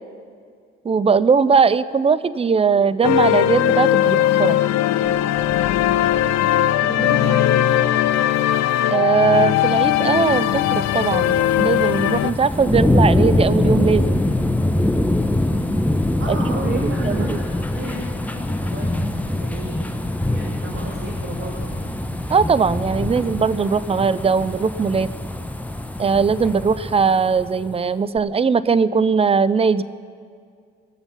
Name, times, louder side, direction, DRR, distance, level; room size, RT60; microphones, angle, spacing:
voice 1, 0.8-4.6 8.9-14.2 16.3-17.4 22.3-25.1 26.0-29.8, right 5 dB, 20° right, 16 dB, 0.4 m, -19 dB
sound 1, 3.0-12.3, left 12 dB, 55° left, 0.5 m, -19 dB
voice 2, 6.8-7.5 16.2-21.9, right 1 dB, 40° right, -4 dB, 2.5 m, -33 dB
sound 2, 9.6-27.7 28.2-28.3, left 1 dB, 5° left, 0.9 m, -23 dB
20.0 x 7.0 x 5.7 m, 2.2 s
hypercardioid pair, 45°, 32 cm